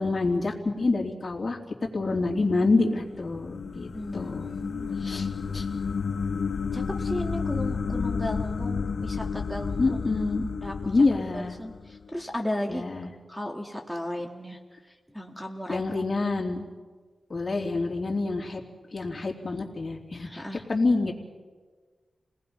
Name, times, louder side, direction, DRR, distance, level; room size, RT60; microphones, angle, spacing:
voice 1, 0.0-1.6 1.9-4.5 5.0-5.3 5.5-5.6 9.8-10.5 10.8-11.6 12.7-13.1 15.7-16.6 17.3-18.6 18.9-20.4 20.7-21.1, left 3 dB, 40° left, -1 dB, 3.3 m, -27 dB
sound 1, 2.8-12.1, left 5 dB, 85° left, 1.1 m, -31 dB
voice 2, 3.9-4.9 6.7-10.0 10.6-10.7 11.3-12.9 13.3-14.6 15.1-15.8 20.2-20.6, left 1 dB, ahead, 2 dB, 2.0 m, -35 dB
29.5 x 19.0 x 5.6 m, 1.4 s
wide cardioid pair, 70°, 0 cm